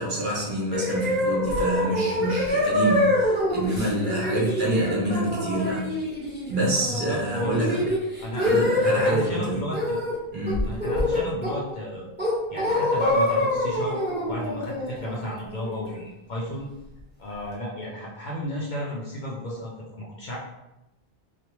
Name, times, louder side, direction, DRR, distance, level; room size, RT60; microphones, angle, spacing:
voice 1, 0.0-5.9 6.5-7.8 8.4-9.6 10.3-10.7 11.1-11.3, right 1 dB, 50° right, -6 dB, 1.0 m, -27 dB
sound 1, 0.7-9.2 9.7-10.2 10.5-11.7 12.2-15.9, left 1 dB, 10° right, 1.0 m, -25 dB
voice 2, 6.9-7.7 8.2-8.4 8.8-10.0 10.6-12.1 12.5-16.7 17.2-20.4, equal, 55° left, -4 dB, 0.6 m, -33 dB
3.0 x 2.4 x 2.9 m, 0.93 s
omnidirectional pair, 1.1 m